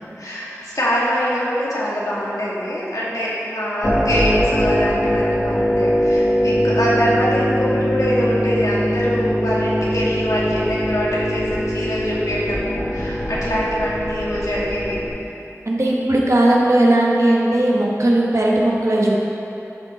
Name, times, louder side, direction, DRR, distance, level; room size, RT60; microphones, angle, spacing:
voice 1, 0.2-15.0, equal, 90° left, -7 dB, 2.0 m, -23 dB
sound 1, 3.8-15.1, equal, 20° left, 1.3 m, -21 dB
voice 2, 15.7-19.1, right 1 dB, 60° right, -3 dB, 1.4 m, -17 dB
12.5 x 5.5 x 4.2 m, 2.9 s
wide cardioid pair, 45°, 6 cm